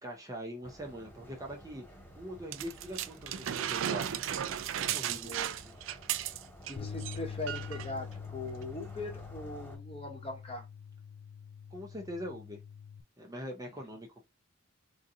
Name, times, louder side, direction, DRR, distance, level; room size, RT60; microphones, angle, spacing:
voice 1, 0.0-1.8 2.2-4.2 4.9-5.3 11.7-12.6 13.2-14.1, equal, 15° right, 0.6 m, -42 dB
sound 1, 0.6-9.8, equal, 10° left, 1.5 m, -52 dB
sound 2, 2.5-6.7 7.0-7.2 7.5-7.9 8.6-8.7, right 10 dB, 65° right, 0.4 m, -35 dB
voice 2, 5.1-5.8 6.7-8.1 8.3-10.7 13.8-13.9, left 2 dB, 30° left, 0.9 m, -41 dB
Bass guitar, 6.8-13.0, left 7 dB, 60° left, 0.3 m, -45 dB
3.8 x 2.7 x 2.6 m
head